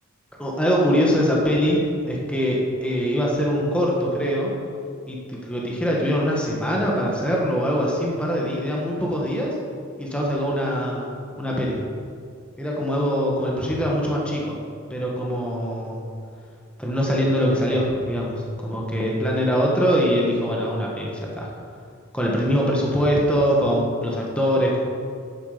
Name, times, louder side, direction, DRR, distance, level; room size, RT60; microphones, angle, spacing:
voice 1, 0.4-4.5 5.1-9.5 10.0-11.8 12.6-14.6 14.9-16.0 16.8-21.5 22.1-24.8, equal, 5° left, -3 dB, 1.7 m, -23 dB
11.0 x 9.9 x 5.2 m, 2.3 s
head